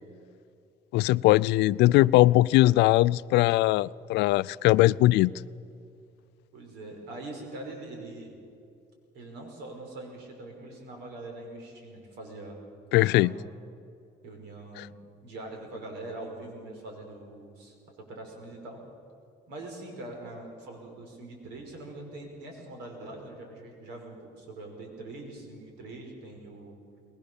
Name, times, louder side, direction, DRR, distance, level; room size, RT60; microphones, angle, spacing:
voice 1, 0.9-5.3 12.9-13.3 14.8-14.9, left 18 dB, 85° left, 0.4 m, -21 dB
voice 2, 6.5-8.4 9.1-12.6 12.9-13.5 14.2-15.0 15.2-18.8 19.5-26.8, right 2 dB, 85° right, 5.6 m, -43 dB
22.0 x 21.5 x 7.1 m
cardioid pair, 110°, 17 cm